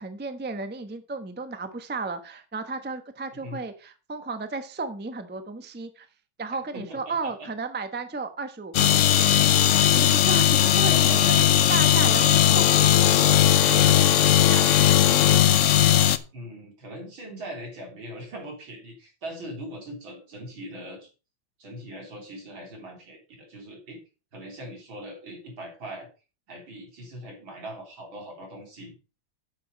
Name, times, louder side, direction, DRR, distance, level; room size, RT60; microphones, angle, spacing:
voice 1, 0.0-6.1 6.4-14.6, right 3 dB, 10° right, 9 dB, 0.5 m, -34 dB
voice 2, 6.7-7.5 10.8-11.4 16.3-21.1 21.6-24.0 24.3-26.1 26.5-28.9, right 1 dB, 85° right, 1 dB, 4.1 m, -40 dB
sound 1, 8.7-16.2, left 11 dB, 80° left, 0.7 m, -18 dB
8.7 x 6.9 x 5.2 m, 0.33 s
omnidirectional pair, 2.1 m